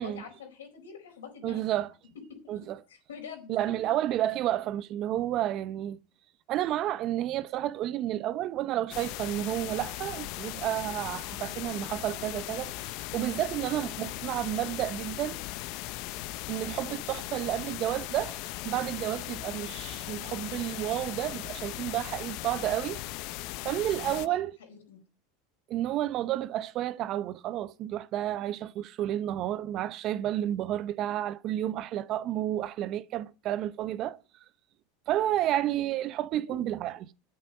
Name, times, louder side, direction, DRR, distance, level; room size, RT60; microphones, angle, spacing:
voice 1, 0.0-1.6 2.4-2.5 2.9-3.8 24.1-25.0 36.4-36.5, left 6 dB, 90° left, 4.3 m, -45 dB
voice 2, 1.4-1.9 2.5-2.8 3.5-6.0 6.5-12.7 13.1-15.4 16.5-23.0 23.6-24.5 25.7-34.2 35.1-37.1, right 13 dB, 50° right, 0.8 m, -31 dB
sound 1, 8.9-24.3, left 17 dB, 60° left, 0.7 m, -38 dB
10.5 x 8.8 x 5.4 m
hypercardioid pair, 105°, 0 cm